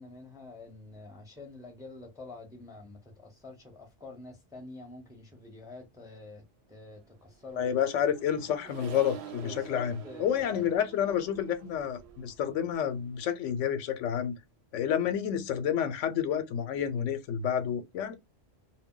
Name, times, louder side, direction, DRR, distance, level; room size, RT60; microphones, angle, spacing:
voice 1, 0.0-6.4 6.7-7.8 9.3-10.7, left 3 dB, 5° right, 0.6 m, -47 dB
Accelerating revving vroom, 7.2-13.9, right 7 dB, 70° right, 0.8 m, -48 dB
voice 2, 7.6-14.4 14.7-18.2, left 9 dB, 85° left, 0.9 m, -29 dB
2.2 x 2.2 x 3.6 m
omnidirectional pair, 1.2 m